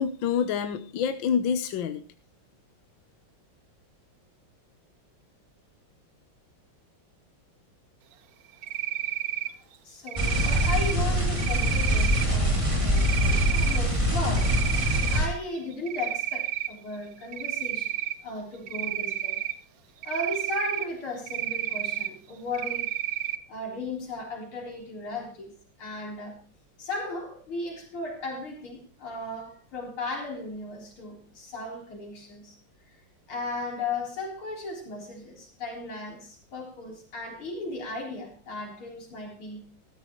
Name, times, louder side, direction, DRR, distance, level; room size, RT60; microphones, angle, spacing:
voice 1, 0.0-2.0, left 7 dB, 70° left, 1.5 m, -27 dB
Cricket, 8.6-9.5 10.1-10.9 11.4-12.2 13.0-13.8 14.2-15.2 15.6-16.7 17.3-18.1 18.7-19.5 20.0-20.9 21.3-22.1 22.5-23.4, right 12 dB, 65° right, 0.9 m, -31 dB
voice 2, 9.8-19.4 20.0-22.9 23.5-26.4 26.8-32.6 33.3-39.6, left 2 dB, 90° left, 4.6 m, -36 dB
sound 1, 10.2-15.3, equal, 15° right, 2.5 m, -24 dB
14.0 x 13.5 x 3.1 m
omnidirectional pair, 2.3 m